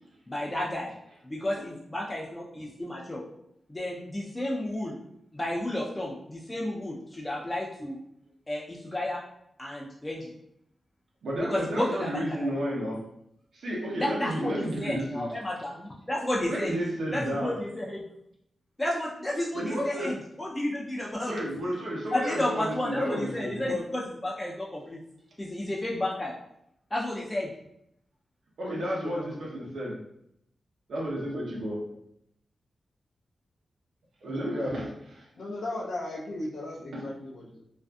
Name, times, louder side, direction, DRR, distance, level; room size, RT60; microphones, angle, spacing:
voice 1, 0.3-0.9 1.2-3.2 3.7-5.0 5.3-8.0 8.5-9.2 9.6-10.3 11.4-12.5 14.0-16.7 17.1-18.0 18.8-21.4 22.1-25.0 25.4-26.3 26.9-27.5, left 1 dB, 15° left, -4 dB, 0.3 m, -32 dB
voice 2, 11.2-13.0 13.5-15.3 16.5-17.6 19.5-20.2 21.2-23.8 28.6-30.0 30.9-31.8 34.2-35.3 36.9-37.0, equal, 90° right, -4 dB, 0.8 m, -32 dB
voice 3, 28.6-29.7 35.3-37.6, left 1 dB, 80° left, -3 dB, 0.4 m, -37 dB
2.5 x 2.4 x 2.3 m, 0.77 s
wide cardioid pair, 140°, 0 cm